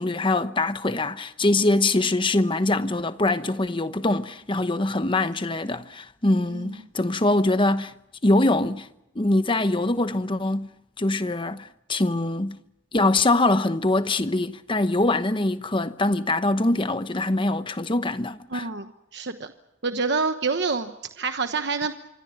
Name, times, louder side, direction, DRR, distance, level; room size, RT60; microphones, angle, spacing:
voice 1, 0.0-7.9 8.2-8.9 9.1-10.7 11.0-12.6 12.9-18.7, left 2 dB, 25° left, 1.0 m, -23 dB
voice 2, 18.5-19.5 19.8-21.9, right 4 dB, 60° right, 1.2 m, -27 dB
27.0 x 24.0 x 5.9 m
head